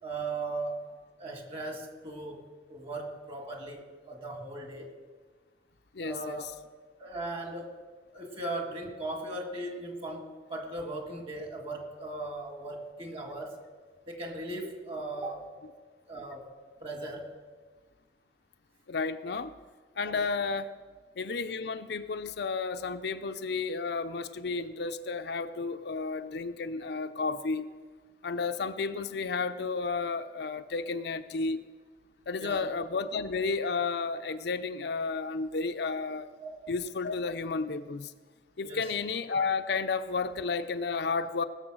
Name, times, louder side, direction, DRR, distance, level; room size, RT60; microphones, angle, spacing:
voice 1, 0.0-0.8 1.2-4.9 6.0-6.5 7.0-7.7 8.1-13.6 14.1-15.6 16.1-16.5 16.8-17.4 20.0-20.3 32.4-32.7 36.4-36.6 38.6-38.9, right 2 dB, 35° right, 3 dB, 1.8 m, -38 dB
voice 2, 5.9-6.5 18.9-19.5 20.0-20.7 21.2-27.7 28.2-31.6 32.3-36.3 36.7-38.1 38.6-41.4, left 4 dB, 65° left, 9 dB, 0.6 m, -32 dB
19.0 x 7.0 x 6.1 m, 1.4 s
head